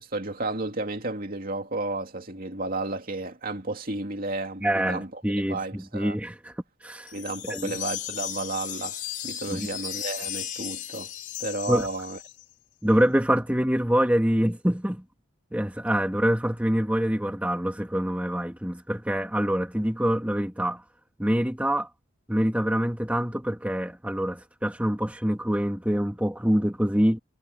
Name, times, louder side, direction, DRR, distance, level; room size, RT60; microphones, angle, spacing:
voice 1, 0.0-6.2 7.1-11.1 11.4-12.2, right 2 dB, 40° right, 2.7 m, -32 dB
voice 2, 4.6-6.5 6.8-7.1 7.5-7.8 9.5-9.7 11.7-11.9 12.8-15.0 15.5-20.8 21.2-21.9 22.3-27.2, equal, 5° right, 1.9 m, -25 dB
sound 1, 7.1-12.4, left 10 dB, 40° left, 7.2 m, -35 dB
head